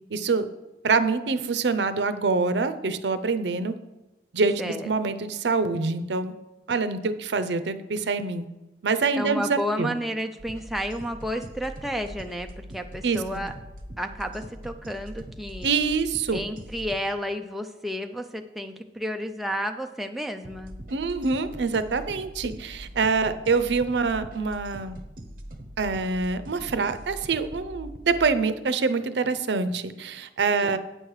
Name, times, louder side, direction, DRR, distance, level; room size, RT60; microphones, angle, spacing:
voice 1, 0.1-0.5 0.8-3.7 4.3-6.3 6.7-8.5 8.8-9.9 13.0-13.2 15.6-16.4 20.9-25.0 25.8-30.8, right 4 dB, 85° right, 12 dB, 0.6 m, -25 dB
voice 2, 4.6-4.9 9.2-12.5 12.7-13.5 14.0-15.7 16.3-20.7 30.5-30.8, equal, ahead, 4 dB, 0.4 m, -31 dB
sound 1, 10.4-17.0 20.4-28.3, equal, 50° right, 0.9 m, -42 dB
9.0 x 6.3 x 4.8 m, 1.0 s
head